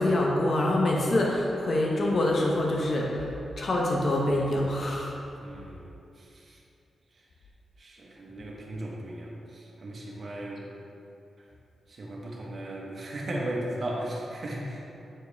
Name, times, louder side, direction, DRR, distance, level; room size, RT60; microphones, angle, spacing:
voice 1, 0.0-3.3 3.6-5.1, left 1 dB, 55° left, -2 dB, 0.9 m, -25 dB
voice 2, 5.4-5.9 6.2-6.6 7.8-10.7 11.9-14.9, right 1 dB, 50° right, -2 dB, 1.3 m, -36 dB
8.7 x 4.7 x 3.5 m, 2.7 s
cardioid pair, 90°, 0 cm